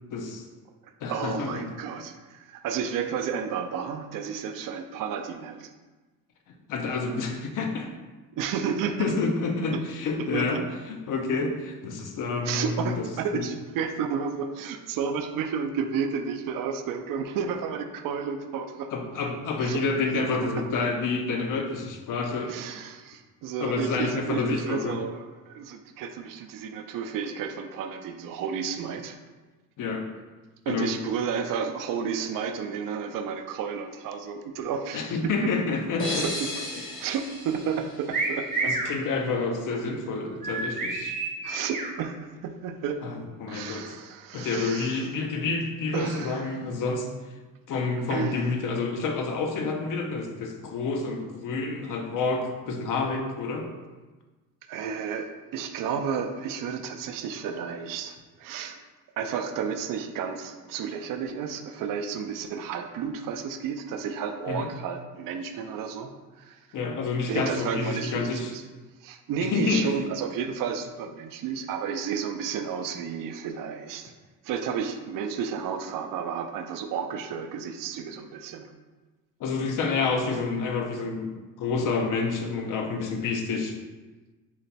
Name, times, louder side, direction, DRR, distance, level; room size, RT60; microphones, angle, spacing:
voice 1, 0.1-0.4 1.0-1.7 6.7-7.9 9.0-13.0 13.3-13.4 18.9-22.6 23.6-25.0 29.8-30.0 30.7-30.9 34.9-36.3 38.7-41.2 43.0-43.9 44.3-47.1 47.7-53.7 64.5-64.7 66.7-68.5 69.4-69.9 79.4-83.8, left 4 dB, 60° left, 3 dB, 0.6 m, -28 dB
voice 2, 0.8-5.7 8.3-9.1 9.7-9.8 10.3-10.6 12.4-18.9 19.6-19.8 22.5-29.2 30.7-35.5 36.1-36.5 37.0-38.7 41.4-43.0 43.5-45.1 45.9-46.5 48.1-48.4 54.7-58.8 59.2-66.1 66.4-66.7 67.3-68.6 69.0-74.1 74.4-78.7, right 6 dB, 65° right, 6 dB, 0.5 m, -32 dB
sound 1, 36.0-38.8, left 2 dB, 35° left, 0.8 m, -35 dB
sound 2, 38.1-38.9 40.4-41.9, right 3 dB, 25° right, 0.7 m, -29 dB
4.0 x 2.2 x 4.1 m, 1.2 s
cardioid pair, 105°, 35 cm